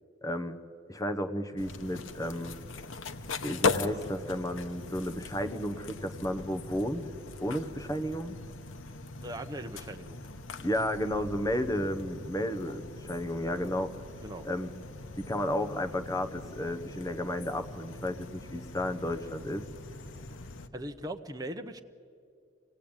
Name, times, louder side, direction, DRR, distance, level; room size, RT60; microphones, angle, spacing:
voice 1, 0.2-0.6 0.9-2.6 3.4-7.1 7.4-8.4 10.6-13.9 14.4-14.7 15.2-19.6, left 1 dB, 15° left, 7 dB, 1.0 m, -32 dB
sound 1, 1.6-20.7, left 3 dB, 85° left, 1.0 m, -39 dB
voice 2, 9.2-10.2 14.2-14.4 20.7-21.8, right 1 dB, 20° right, 5 dB, 0.8 m, -39 dB
25.5 x 17.5 x 8.9 m, 2.4 s
head